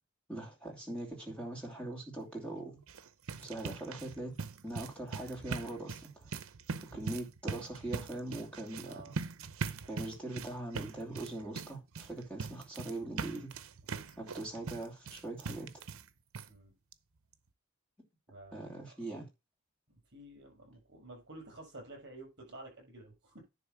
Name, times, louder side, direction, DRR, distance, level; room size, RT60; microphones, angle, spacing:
voice 1, 0.3-2.8 3.4-4.4 4.6-6.3 6.9-9.0 9.9-13.5 14.2-15.7 18.5-19.3, right 1 dB, 5° left, 2.7 m, -41 dB
sound 1, 2.8-16.1 16.3-16.5 16.9-17.0 17.3-17.4, right 4 dB, 70° right, 0.7 m, -42 dB
voice 2, 8.8-9.2 13.9-14.3 16.5-16.7 18.3-18.7 20.1-23.4, right 2 dB, 50° right, 6.6 m, -51 dB
10.5 x 3.6 x 7.2 m
head